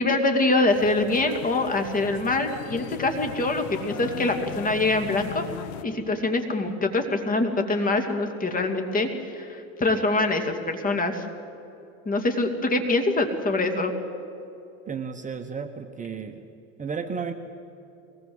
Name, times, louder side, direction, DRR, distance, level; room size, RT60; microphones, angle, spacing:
voice 1, 0.0-5.5 5.8-11.3 12.1-13.9, left 2 dB, 25° left, 5 dB, 2.6 m, -24 dB
sound 1, 0.7-5.8, left 10 dB, 85° left, 1.4 m, -39 dB
voice 2, 14.9-16.4 16.8-17.3, right 6 dB, 20° right, 6 dB, 1.2 m, -33 dB
23.0 x 19.5 x 8.0 m, 2.9 s
supercardioid pair, 120°, 36 cm